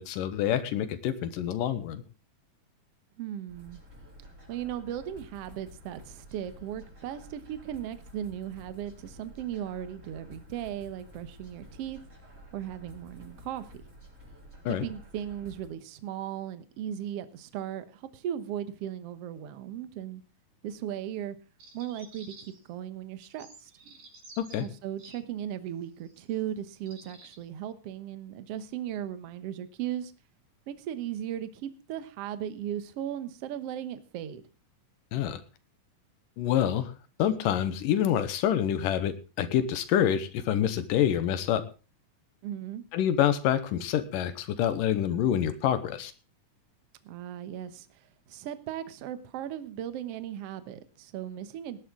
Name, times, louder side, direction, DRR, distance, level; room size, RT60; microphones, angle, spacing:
voice 1, 0.0-2.0 14.7-14.9 24.4-24.7 35.1-35.4 36.4-36.9 37.2-41.7 42.9-46.1, left 10 dB, 75° left, 12 dB, 2.6 m, -27 dB
voice 2, 3.2-3.8 4.5-12.0 12.5-13.7 14.7-20.2 20.6-21.4 21.7-23.7 24.5-30.1 30.7-34.4 42.4-42.8 47.0-51.8, right 10 dB, 65° right, 12 dB, 1.6 m, -37 dB
sound 1, 3.5-15.7, left 1 dB, 20° right, 4.5 m, -51 dB
sound 2, 21.6-22.7 23.2-25.2 26.0-26.2 26.8-27.4, right 3 dB, 80° right, 6.6 m, -51 dB
19.0 x 11.0 x 3.7 m, 0.33 s
omnidirectional pair, 4.0 m